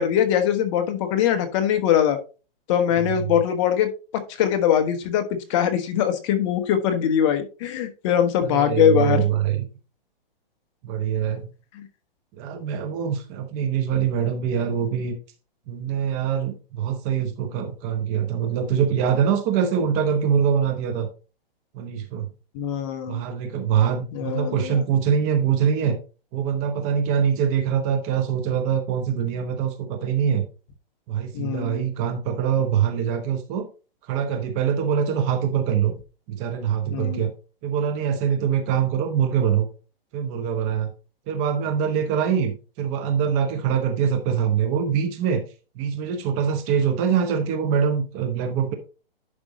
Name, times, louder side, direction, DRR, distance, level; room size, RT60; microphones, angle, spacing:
voice 1, 0.0-2.2 2.7-9.2 11.8-11.9 22.5-23.2 24.1-24.8 31.3-31.9 36.9-37.3, left 9 dB, 30° left, 7 dB, 1.2 m, -22 dB
voice 2, 3.0-3.4 8.4-9.7 10.8-11.4 12.4-15.2 15.7-21.1 21.7-22.3 23.1-26.0 26.3-30.5 31.1-33.7 34.1-35.9 36.3-37.3 37.6-39.7 40.1-40.9 41.3-45.4 45.7-48.7, right 8 dB, 25° right, 7 dB, 0.8 m, -24 dB
11.0 x 5.2 x 3.1 m, 0.33 s
hypercardioid pair, 155°, 30 cm